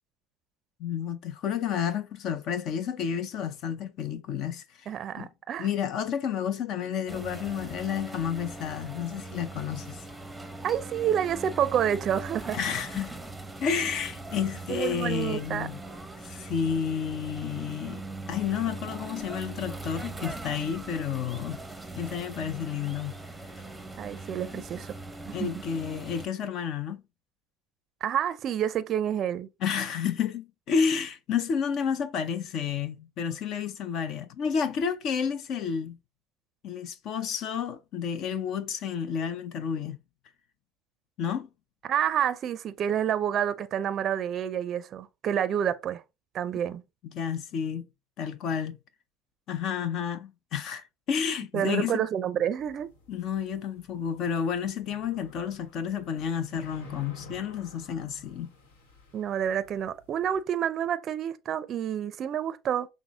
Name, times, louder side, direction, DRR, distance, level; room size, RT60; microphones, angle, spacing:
voice 1, 0.8-4.9 5.2-5.3 5.6-10.0 12.5-13.2 13.6-15.8 16.2-18.0 18.3-21.6 21.9-23.1 24.5-24.6 25.3-27.0 29.6-36.0 36.6-40.0 41.2-41.5 47.0-47.9 48.2-48.8 49.5-52.0 53.1-58.5, left 7 dB, 55° left, 0.5 m, -31 dB
voice 2, 4.9-5.7 10.6-12.6 14.7-15.7 24.0-24.9 25.3-25.5 28.0-29.5 41.9-46.0 46.3-46.8 51.5-52.9 59.1-62.9, right 9 dB, 45° right, 0.4 m, -28 dB
sound 1, 7.1-26.3, right 2 dB, 5° right, 0.7 m, -41 dB
sound 2, 52.6-60.4, left 4 dB, 85° left, 1.2 m, -51 dB
6.0 x 2.0 x 3.5 m
supercardioid pair, 95°, 0 cm